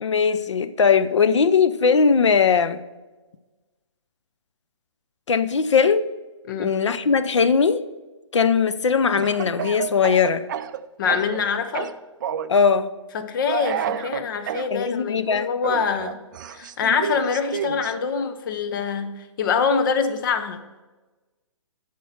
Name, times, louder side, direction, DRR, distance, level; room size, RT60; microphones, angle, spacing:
voice 1, 0.0-2.8 5.3-6.1 6.6-7.8 8.3-10.4 12.5-12.9 14.7-15.5, left 5 dB, 70° left, 0.7 m, -19 dB
Speech / Cough, 9.2-11.4 11.7-12.6 13.5-14.7 15.6-17.9, right 9 dB, 40° right, 0.4 m, -30 dB
voice 2, 11.0-11.9 13.1-16.2 16.5-20.6, left 6 dB, 45° left, 1.0 m, -25 dB
10.5 x 6.1 x 5.7 m
figure-of-eight pair, 130°, 16 cm